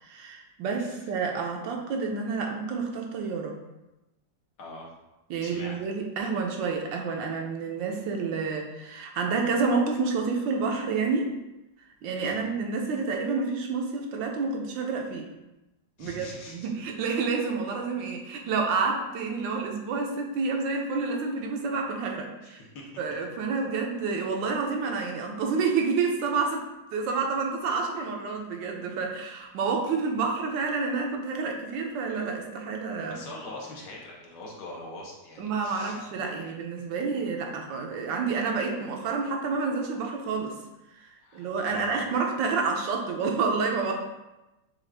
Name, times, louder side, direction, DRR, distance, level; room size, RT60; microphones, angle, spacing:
voice 1, 0.0-3.6 5.3-11.3 12.0-15.3 16.0-22.6 23.0-26.6 26.9-33.2 35.4-40.5 40.9-43.9, right 4 dB, 75° right, 2 dB, 1.3 m, -29 dB
voice 2, 4.6-5.0 5.4-5.8 12.2-12.4 16.0-16.7 22.4-22.9 33.1-36.0 36.7-36.8 41.2-41.9, left 2 dB, 65° left, -3 dB, 1.4 m, -43 dB
6.2 x 2.4 x 3.3 m, 0.99 s
omnidirectional pair, 2.0 m